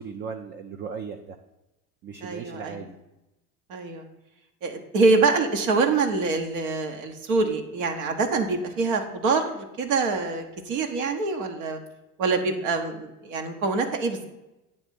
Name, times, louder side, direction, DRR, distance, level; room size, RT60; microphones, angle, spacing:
voice 1, 0.0-1.4 2.0-2.9, right 6 dB, 25° right, 5 dB, 0.5 m, -37 dB
voice 2, 2.2-2.9 3.7-4.0 4.6-11.8 12.2-14.3, right 3 dB, 55° right, 4 dB, 1.2 m, -25 dB
9.0 x 3.5 x 6.8 m, 0.95 s
figure-of-eight pair, 80°, 45 cm